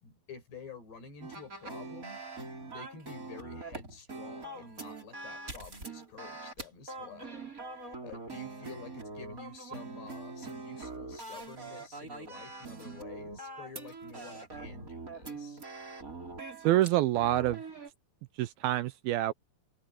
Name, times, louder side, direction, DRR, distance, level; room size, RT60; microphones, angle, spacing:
voice 1, 0.0-2.2 2.6-15.6, left 4 dB, 80° left, 7.9 m, -49 dB
sound 1, 1.2-17.9, right 3 dB, 20° right, 4.4 m, -43 dB
voice 2, 16.6-17.6 18.4-19.3, right 14 dB, 80° right, 2.3 m, -26 dB
omnidirectional pair, 4.7 m